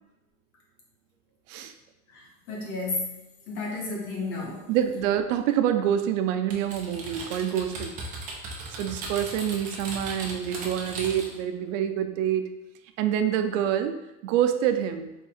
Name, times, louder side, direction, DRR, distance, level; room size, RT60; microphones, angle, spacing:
voice 1, 2.1-3.2 3.5-4.6, left 3 dB, 75° left, -3 dB, 1.4 m, -32 dB
voice 2, 4.7-7.9 8.7-12.5 13.0-15.1, right 10 dB, 90° right, 8 dB, 0.5 m, -26 dB
Typing, 6.5-11.4, right 2 dB, 20° right, 0.4 m, -37 dB
3.6 x 2.3 x 4.2 m, 0.96 s
cardioid pair, 175°, 37 cm